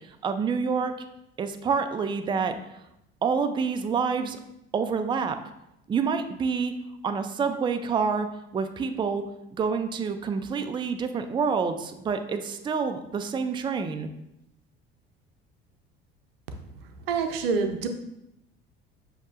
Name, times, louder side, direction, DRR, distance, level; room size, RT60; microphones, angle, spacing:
voice 1, 0.2-0.9 1.4-2.6 3.2-4.4 4.7-5.4 5.9-6.7 7.0-8.3 8.5-9.2 9.5-14.1, right 5 dB, 15° right, 8 dB, 0.4 m, -27 dB
voice 2, 17.1-17.9, right 5 dB, 80° right, 6 dB, 0.6 m, -26 dB
7.2 x 2.8 x 2.5 m, 0.85 s
hypercardioid pair, 65°, 29 cm